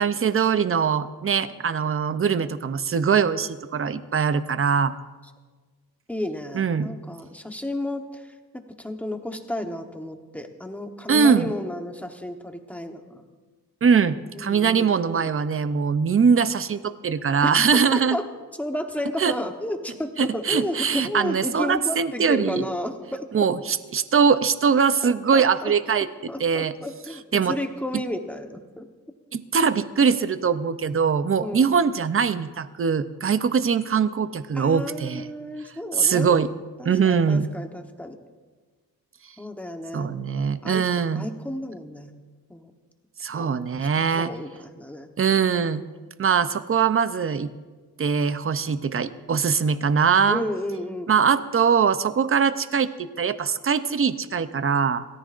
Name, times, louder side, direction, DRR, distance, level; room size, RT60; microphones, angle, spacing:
voice 1, 0.0-4.9 6.5-6.9 11.1-11.5 13.8-18.2 19.2-19.4 20.2-22.6 23.3-26.7 27.3-27.6 29.3-35.3 35.9-36.5 36.8-37.5 39.9-41.3 43.2-44.3 45.2-45.8 46.2-47.5 48.0-50.4 51.1-55.1, right 6 dB, 35° right, 13 dB, 0.6 m, -22 dB
voice 2, 6.1-13.2 14.3-15.3 17.4-17.5 17.9-18.2 18.6-23.5 25.0-25.7 26.3-27.2 27.5-28.9 31.4-31.7 34.5-36.3 36.8-38.2 39.4-40.1 40.6-40.8 41.1-42.2 42.5-42.7 43.3-43.5 43.9-45.1 50.3-51.2, left 1 dB, 5° left, 4 dB, 1.0 m, -32 dB
29.5 x 14.0 x 2.5 m, 1.4 s
wide cardioid pair, 155°, 38 cm